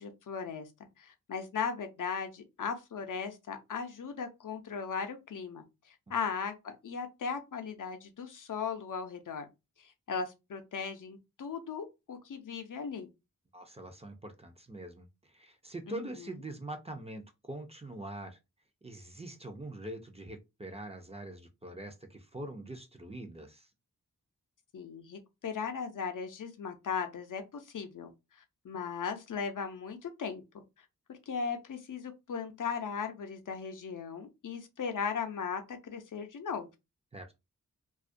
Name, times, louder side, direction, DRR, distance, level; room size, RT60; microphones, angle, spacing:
voice 1, 0.0-9.5 9.8-13.1 15.9-16.3 24.7-28.1 28.6-36.7, left 6 dB, 70° left, 0.5 m, -38 dB
voice 2, 13.5-18.4 18.8-23.7 37.1-37.4, right 1 dB, 20° right, 0.4 m, -44 dB
2.3 x 2.1 x 2.5 m
wide cardioid pair, 80°, 33 cm